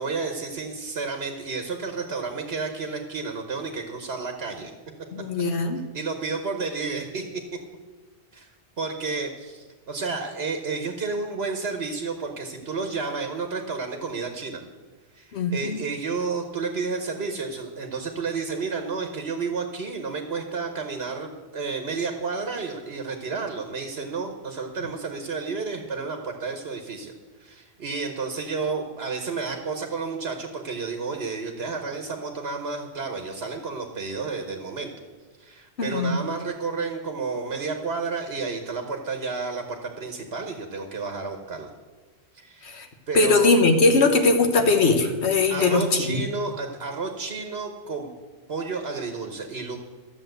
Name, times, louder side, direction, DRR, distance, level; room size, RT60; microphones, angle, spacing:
voice 1, 0.0-4.7 5.9-7.4 8.3-8.5 8.8-14.6 15.1-27.1 27.4-34.9 35.4-41.7 42.3-42.7 43.1-43.5 45.5-48.1 48.5-49.8, right 4 dB, 70° right, 4 dB, 1.3 m, -31 dB
voice 2, 5.1-5.8 15.3-15.8 35.8-36.2 42.6-42.9 43.1-46.2, left 3 dB, 85° left, 5 dB, 1.5 m, -20 dB
13.0 x 7.1 x 7.9 m, 1.4 s
omnidirectional pair, 1.1 m